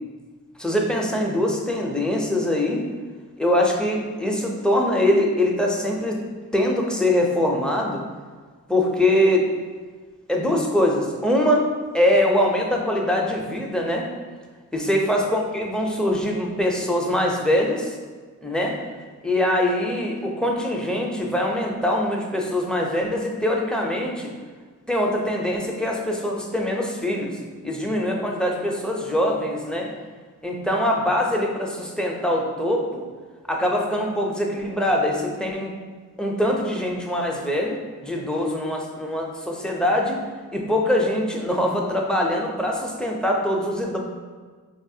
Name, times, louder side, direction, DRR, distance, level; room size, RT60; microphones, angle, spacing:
voice 1, 0.6-2.8 3.4-6.2 6.5-8.0 8.7-9.5 10.3-14.1 14.7-17.9 18.4-18.8 19.2-24.3 24.9-27.4 27.6-29.9 30.4-33.0 33.5-35.7 36.2-40.2 40.5-44.0, left 1 dB, ahead, -1 dB, 0.6 m, -23 dB
4.0 x 2.4 x 2.7 m, 1.5 s
cardioid pair, 45°, 35 cm